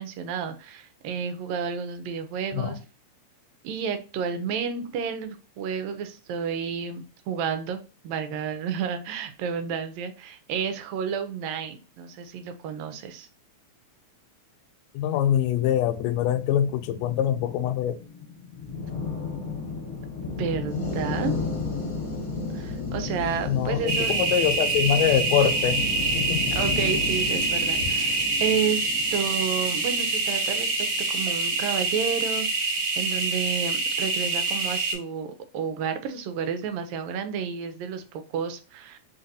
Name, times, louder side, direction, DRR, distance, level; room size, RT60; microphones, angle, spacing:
voice 1, 0.0-2.8 3.6-13.3 20.2-21.3 22.5-24.1 26.5-30.7 31.1-32.7 33.0-38.0 38.3-39.0, right 7 dB, 75° right, 1.9 m, -31 dB
voice 2, 14.9-18.0 23.5-25.9 26.2-26.5, left 10 dB, 80° left, 1.7 m, -24 dB
sound 1, 16.3-30.8, left 4 dB, 45° left, 1.3 m, -34 dB
sound 2, 23.9-34.9, right 3 dB, 55° right, 1.6 m, -26 dB
3.9 x 3.8 x 2.7 m
omnidirectional pair, 3.4 m